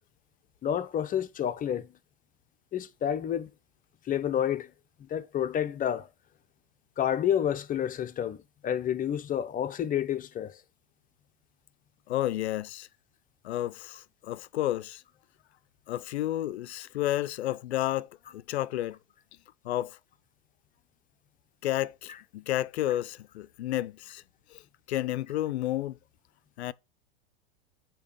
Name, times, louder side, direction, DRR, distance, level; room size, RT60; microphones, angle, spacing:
voice 1, 0.6-1.9 2.7-3.5 4.1-4.7 5.1-6.1 7.0-8.4 8.6-10.6, left 9 dB, 25° left, 0.7 m, -29 dB
voice 2, 12.1-12.9 13.4-15.0 15.9-19.0 19.6-20.0 21.6-24.2 24.5-24.6 24.9-26.0 26.6-26.7, left 14 dB, 85° left, 0.5 m, -31 dB
8.4 x 3.0 x 5.4 m
hypercardioid pair, 105°, 32 cm